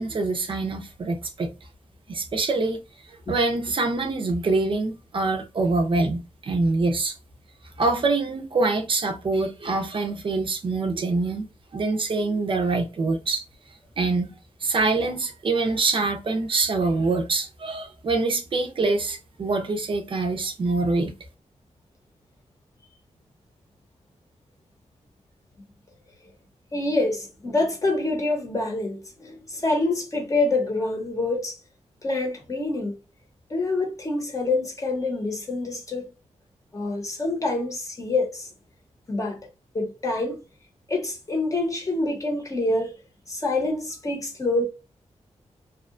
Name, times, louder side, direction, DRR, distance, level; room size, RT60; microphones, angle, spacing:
voice 1, 0.0-1.5 2.1-2.8 3.1-7.2 7.8-11.5 11.7-13.4 14.0-21.1, right 3 dB, 45° right, 0.5 m, -25 dB
voice 2, 26.7-31.6 32.0-32.9 33.5-36.1 36.7-38.5 39.1-39.4 39.7-40.4 40.9-42.9 43.3-44.6, left 2 dB, 25° left, 0.8 m, -26 dB
2.7 x 2.1 x 2.4 m
wide cardioid pair, 175°, 12 cm